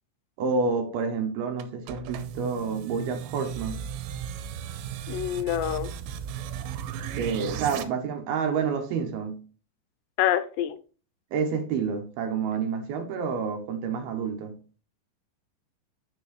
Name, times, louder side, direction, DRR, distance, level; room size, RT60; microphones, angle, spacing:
voice 1, 0.4-3.8 7.1-9.4 11.3-14.6, right 5 dB, 75° right, 2.6 m, -29 dB
sound 1, 1.6-7.8, right 9 dB, 90° right, 2.9 m, -36 dB
voice 2, 5.1-5.9 10.2-10.8, left 12 dB, 80° left, 2.7 m, -26 dB
8.9 x 6.4 x 3.1 m
omnidirectional pair, 5.0 m